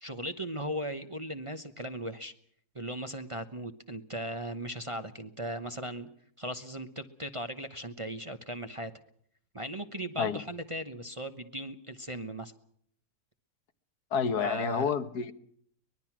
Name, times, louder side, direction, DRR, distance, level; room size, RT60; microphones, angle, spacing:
voice 1, 0.0-2.3 2.7-6.1 6.4-8.9 9.5-12.5 14.4-14.9, right 1 dB, 25° right, 7 dB, 0.9 m, -37 dB
voice 2, 14.1-15.3, left 6 dB, 80° left, 11 dB, 1.7 m, -29 dB
24.0 x 21.0 x 6.1 m, 0.64 s
omnidirectional pair, 1.7 m